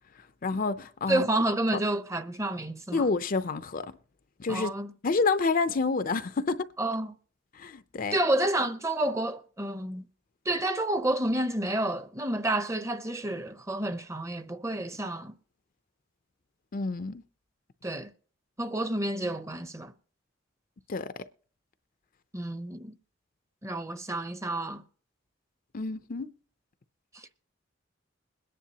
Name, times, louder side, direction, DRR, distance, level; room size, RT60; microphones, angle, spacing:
voice 1, 0.4-1.2 2.9-3.9 4.4-4.7 5.0-6.7 7.5-8.2 16.7-17.2 20.9-21.1 25.7-26.3, left 4 dB, 45° left, 0.5 m, -28 dB
voice 2, 1.1-3.1 4.5-4.9 6.8-7.1 8.1-10.1 10.5-15.3 17.8-18.1 18.6-19.9 22.3-23.0 23.6-24.8 27.1-27.3, right 1 dB, 15° right, 0.7 m, -29 dB
21.5 x 10.0 x 2.8 m
head